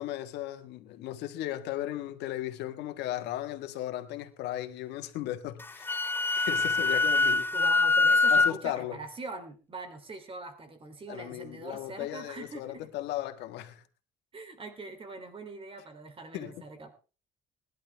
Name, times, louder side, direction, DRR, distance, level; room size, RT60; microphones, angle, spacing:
voice 1, 0.0-5.9 6.3-7.5 8.3-9.0 11.1-13.8 16.3-16.6, left 13 dB, 85° left, 1.6 m, -36 dB
Wind instrument woodwind instrument, 5.6-8.5, left 3 dB, 10° left, 0.6 m, -24 dB
voice 2, 7.5-12.8 14.3-16.9, right 3 dB, 30° right, 3.1 m, -43 dB
19.5 x 11.5 x 3.4 m
cardioid pair, 110°, 17 cm